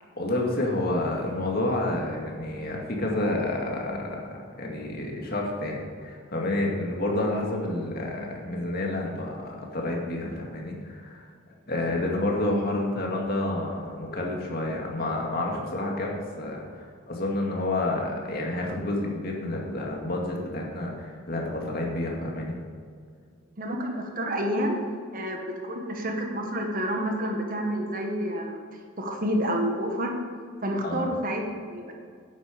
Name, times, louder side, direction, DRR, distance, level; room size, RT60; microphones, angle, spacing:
voice 1, 0.2-11.3 11.7-22.6 30.8-31.1, left 1 dB, 45° left, -1 dB, 2.2 m, -29 dB
voice 2, 23.6-24.8 25.1-28.6 29.0-30.2 30.6-31.9, equal, 45° right, 2 dB, 1.6 m, -29 dB
11.0 x 8.9 x 5.2 m, 2.1 s
head